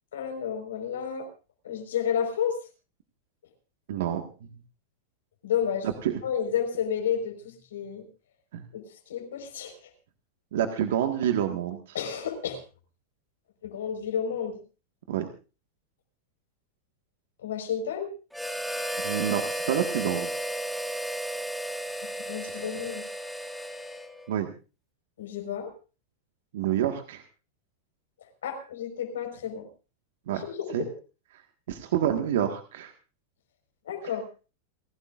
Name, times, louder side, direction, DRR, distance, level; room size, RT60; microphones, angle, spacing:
voice 1, 0.1-1.3 1.6-2.6 5.4-5.9 6.2-8.0 8.7-9.7 11.9-12.6 13.6-14.6 17.4-18.1 22.2-23.0 25.2-25.7 28.4-29.7 30.3-30.9 33.9-34.2, left 8 dB, 90° left, 5 dB, 4.7 m, -31 dB
voice 2, 3.9-4.2 6.0-6.2 8.5-8.7 10.5-11.8 15.1-15.3 19.0-20.3 24.3-24.5 26.5-27.2 30.3-30.4 30.7-30.8 31.7-32.9, right 10 dB, 75° right, 6 dB, 1.6 m, -27 dB
Harmonica, 18.3-24.3, right 1 dB, ahead, 1.8 m, -33 dB
30.0 x 12.5 x 2.5 m, 0.34 s
hypercardioid pair, 125°, 0 cm